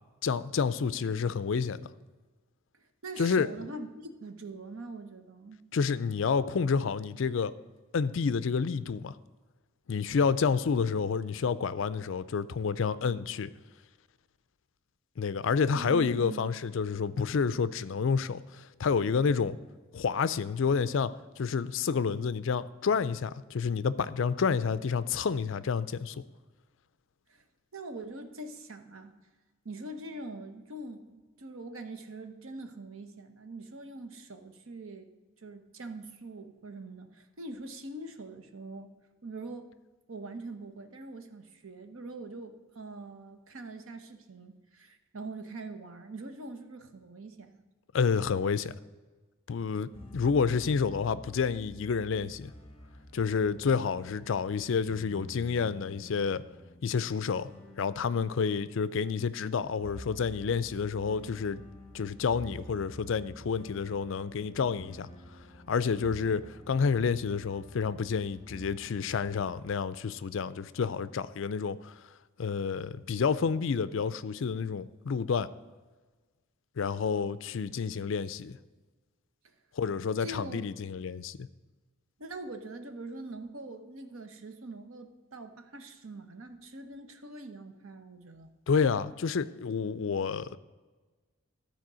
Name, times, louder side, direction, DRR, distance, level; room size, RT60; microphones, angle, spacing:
voice 1, 0.2-1.9 3.2-3.5 5.7-7.5 7.9-9.2 9.9-13.5 15.2-19.6 19.9-21.1 21.4-26.2 47.9-48.7 49.5-52.5 53.1-56.4 56.8-57.5 57.8-61.6 61.9-65.1 65.7-71.9 72.4-75.5 76.8-78.6 79.8-81.5 88.7-90.6, left 5 dB, 60° left, 16 dB, 0.4 m, -29 dB
voice 2, 3.0-5.6 15.7-16.5 27.3-27.4 27.7-29.2 29.6-35.1 35.4-38.9 39.2-39.7 40.1-47.6 79.4-79.6 80.2-80.6 82.2-88.5, right 2 dB, 70° right, 8 dB, 0.9 m, -43 dB
sound 1, 49.9-69.7, left 1 dB, 25° left, 1.1 m, -49 dB
13.5 x 4.5 x 6.1 m, 1.3 s
head